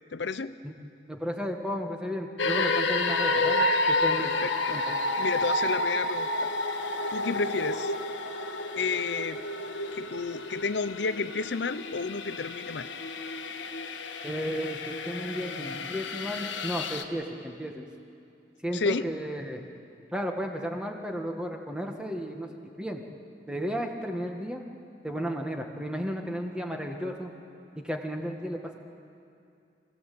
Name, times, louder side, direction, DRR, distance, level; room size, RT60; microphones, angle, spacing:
voice 1, 0.1-0.6 4.2-4.8 5.2-6.5 7.1-7.9 8.8-9.4 9.9-12.9 18.7-19.1, left 4 dB, 75° left, 12 dB, 0.6 m, -31 dB
voice 2, 1.1-4.3 4.7-4.8 14.2-17.8 18.6-19.6 20.1-22.5 22.8-23.0 23.5-24.6 25.0-27.3 27.7-28.8, equal, 5° right, 2 dB, 1.7 m, -33 dB
sound 1, 2.4-17.0, left 2 dB, 90° left, 1.4 m, -30 dB
26.5 x 16.5 x 8.6 m, 2.5 s
head